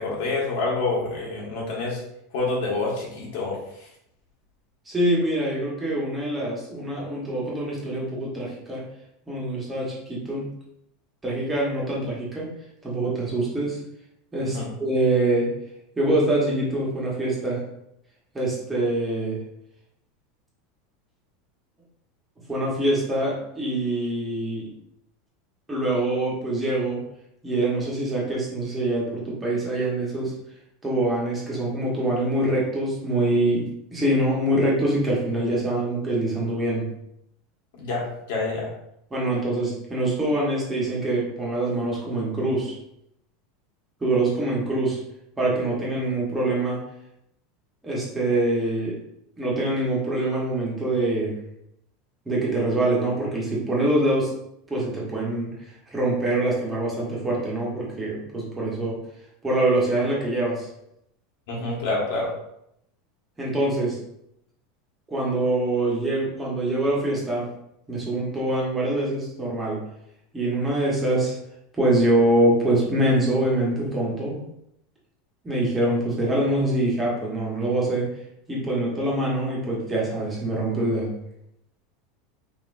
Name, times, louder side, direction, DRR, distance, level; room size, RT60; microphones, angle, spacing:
voice 1, 0.0-2.0 2.3-3.6 14.4-14.7 37.8-38.7 61.5-62.3, left 3 dB, 70° left, -3 dB, 1.6 m, -27 dB
voice 2, 4.9-8.8 9.3-10.5 11.2-12.5 12.8-13.8 14.3-15.5 16.0-17.6 18.3-19.4 22.5-24.7 25.7-27.0 27.4-30.3 30.8-33.7 33.9-36.9 39.1-42.7 44.0-45.0 45.4-46.8 47.8-49.0 49.4-51.3 52.2-54.3 54.7-55.5 55.9-59.0 59.4-60.7 63.4-64.0 65.1-67.5 67.9-69.8 70.3-71.3 71.8-74.3 75.4-78.1 78.5-81.1, right 1 dB, 10° right, -5 dB, 1.3 m, -24 dB
5.5 x 2.9 x 2.6 m, 0.78 s
supercardioid pair, 150°, 0 cm